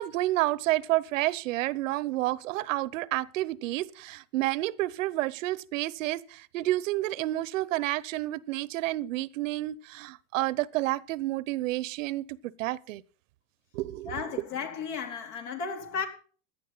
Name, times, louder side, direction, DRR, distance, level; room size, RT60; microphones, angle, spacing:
voice 1, 0.0-13.0 13.7-14.1, right 17 dB, 70° right, 0.9 m, -30 dB
voice 2, 14.1-16.1, left 6 dB, 65° left, 3.9 m, -34 dB
16.5 x 11.5 x 4.0 m
hypercardioid pair, 120°, 40 cm